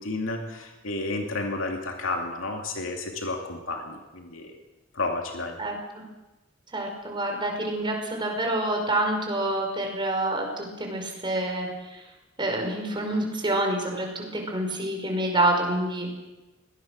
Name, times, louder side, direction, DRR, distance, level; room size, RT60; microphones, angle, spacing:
voice 1, 0.0-4.5 4.9-5.6, left 2 dB, 80° left, 2 dB, 2.7 m, -31 dB
voice 2, 6.7-11.7 12.4-16.1, right 1 dB, 25° right, 2 dB, 5.2 m, -27 dB
21.5 x 18.0 x 6.6 m, 1.1 s
head